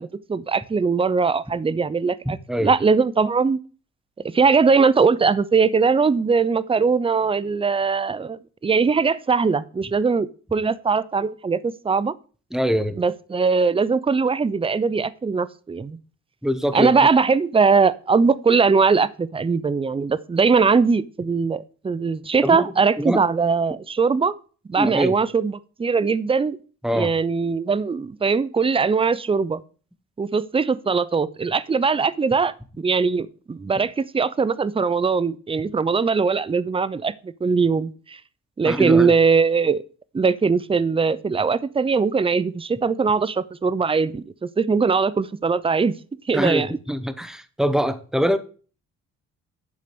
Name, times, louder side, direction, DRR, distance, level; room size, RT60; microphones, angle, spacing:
voice 1, 0.0-3.6 4.2-12.1 13.0-16.0 16.7-24.3 24.7-26.6 26.9-29.6 30.2-38.2 38.6-39.8 40.1-45.9 46.3-46.7, right 5 dB, 20° right, 18 dB, 0.6 m, -21 dB
voice 2, 2.2-2.7 12.5-13.0 16.4-16.9 22.4-22.6 23.0-23.2 24.8-25.1 26.8-27.1 38.6-39.1 46.3-48.4, equal, ahead, 12 dB, 1.2 m, -23 dB
11.0 x 4.9 x 6.1 m, 0.38 s
cardioid pair, 90°, 30 cm